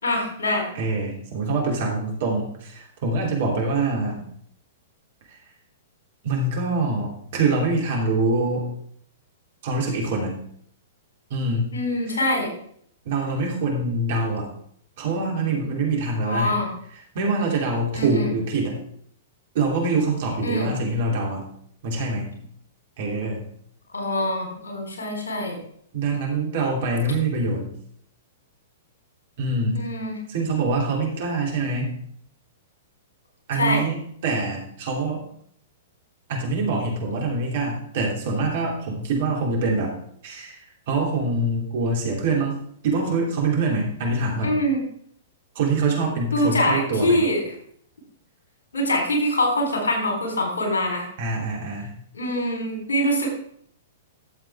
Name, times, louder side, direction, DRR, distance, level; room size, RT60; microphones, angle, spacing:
voice 1, 0.0-0.6 11.7-12.5 16.2-16.7 17.9-18.3 20.4-20.7 23.9-25.6 29.7-30.2 33.6-33.8 44.4-44.8 46.3-47.4 48.7-51.1 52.1-53.3, left 1 dB, 70° left, 1 dB, 3.9 m, -24 dB
voice 2, 0.7-4.2 5.3-5.4 6.2-8.7 9.6-10.3 11.3-11.7 12.1-12.2 13.0-14.5 15.0-16.6 17.1-18.7 19.5-21.5 21.8-22.3 23.0-23.5 25.9-27.7 29.4-29.8 30.3-31.9 33.5-35.2 36.3-39.9 40.2-40.6 40.9-42.6 42.8-44.6 45.5-47.2 51.2-51.9, right 3 dB, 55° right, -1 dB, 3.1 m, -24 dB
12.5 x 7.4 x 3.6 m, 0.64 s
figure-of-eight pair, 105°, 0 cm